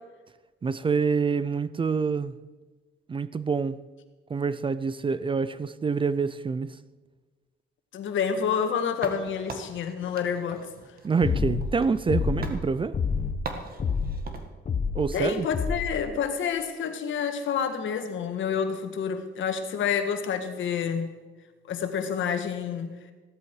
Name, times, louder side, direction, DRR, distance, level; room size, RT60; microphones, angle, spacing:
voice 1, 0.6-2.4 3.1-3.8 4.3-6.8 11.0-13.0 14.9-15.5, right 5 dB, 25° right, 0.5 m, -26 dB
voice 2, 7.9-10.7 15.1-21.1 21.7-22.9, left 7 dB, 80° left, 1.7 m, -28 dB
sound 1, 9.0-12.2 12.4-12.6 13.5-14.5, right 4 dB, 50° right, 1.9 m, -40 dB
sound 2, 11.2-11.7 12.1-12.6 12.9-13.4 13.8-14.2 14.7-15.1 15.5-15.9, left 5 dB, 40° left, 1.1 m, -27 dB
15.0 x 13.5 x 4.8 m
cardioid pair, 110°, 20 cm